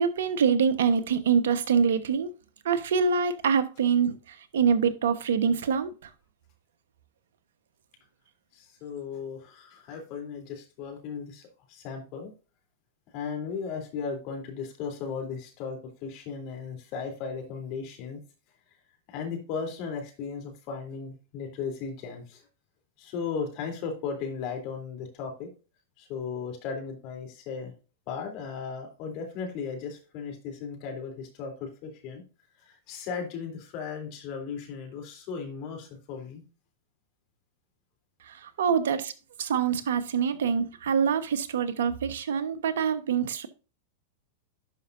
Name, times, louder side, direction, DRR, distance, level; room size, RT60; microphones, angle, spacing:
voice 1, 0.0-2.3 2.6-5.9 38.3-39.1 39.4-43.5, right 6 dB, 75° right, 1.1 m, -25 dB
voice 2, 8.5-11.4 11.7-12.3 13.1-18.2 19.1-22.4 23.0-25.5 26.0-27.7 28.1-32.2 32.6-36.4, left 5 dB, 50° left, 3.2 m, -36 dB
11.5 x 5.5 x 2.6 m
hypercardioid pair, 110°, 0 cm